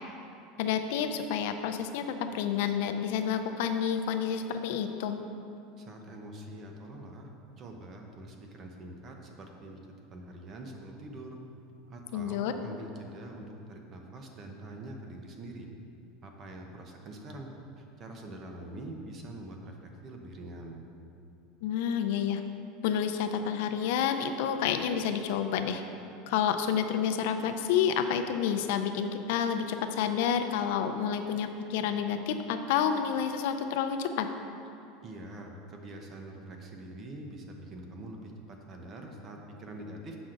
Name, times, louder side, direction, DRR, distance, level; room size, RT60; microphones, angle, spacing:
voice 1, 0.6-5.2 12.1-12.5 21.6-22.4 22.8-25.8 26.3-34.3, left 8 dB, 70° left, 7 dB, 0.5 m, -29 dB
voice 2, 5.8-7.3 7.6-9.8 10.1-11.4 11.9-15.7 16.2-17.5 17.8-20.8 35.0-40.2, right 1 dB, 30° right, 2 dB, 0.8 m, -44 dB
7.9 x 6.0 x 3.8 m, 2.7 s
supercardioid pair, 160°, 0 cm